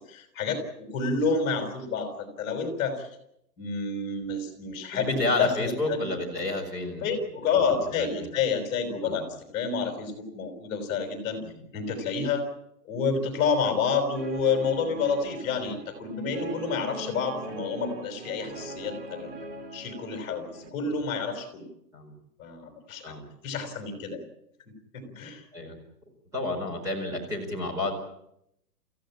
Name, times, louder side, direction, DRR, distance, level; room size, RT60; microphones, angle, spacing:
voice 1, 0.0-3.1 3.6-6.1 7.0-11.4 11.7-12.5 12.8-19.3 19.7-21.7 22.4-23.1 23.4-24.2 24.9-25.4, left 5 dB, 20° left, 5 dB, 5.5 m, -29 dB
voice 2, 4.9-7.1 7.6-8.3 9.0-9.2 11.4-11.5 21.9-22.1 23.0-23.2 25.5-25.8 26.3-27.9, left 2 dB, 5° right, -1 dB, 4.7 m, -30 dB
Guitar, 14.1-20.7, right 2 dB, 45° right, 3.9 m, -41 dB
28.5 x 16.0 x 8.7 m, 0.78 s
hypercardioid pair, 170°, 49 cm